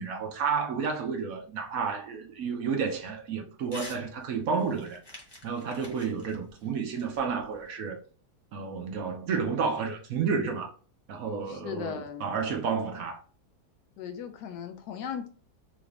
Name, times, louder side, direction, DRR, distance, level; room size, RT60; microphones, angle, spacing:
voice 1, 0.0-5.0 5.4-8.0 8.5-10.7 11.1-13.2, right 5 dB, 65° right, 1.0 m, -31 dB
Crumpling crinkling / Tearing, 3.7-4.0 4.4-7.7, left 1 dB, 20° left, 0.9 m, -47 dB
voice 2, 11.5-12.3 14.0-15.3, left 7 dB, 80° left, 1.2 m, -37 dB
4.0 x 2.5 x 3.2 m
omnidirectional pair, 1.8 m